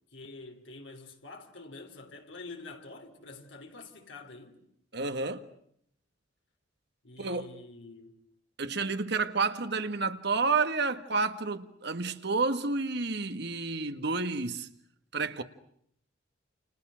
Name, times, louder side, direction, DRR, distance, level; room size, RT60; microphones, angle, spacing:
voice 1, 0.1-4.6 7.0-8.2, left 3 dB, 75° left, 3.5 m, -47 dB
voice 2, 4.9-5.5 7.2-7.5 8.6-14.7 15.1-15.4, right 4 dB, 60° right, 1.7 m, -30 dB
29.5 x 29.5 x 6.4 m
head